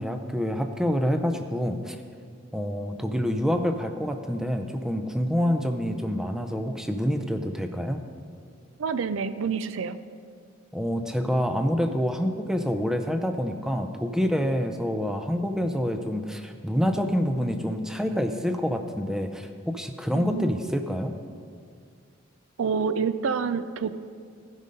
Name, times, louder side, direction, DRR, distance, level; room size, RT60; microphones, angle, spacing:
voice 1, 0.0-2.0 2.5-8.0 10.7-21.1, equal, 5° right, 6 dB, 0.4 m, -27 dB
voice 2, 8.8-10.0 20.1-20.5 22.6-23.9, right 6 dB, 70° right, 13 dB, 0.4 m, -27 dB
16.0 x 5.4 x 5.2 m, 2.1 s
head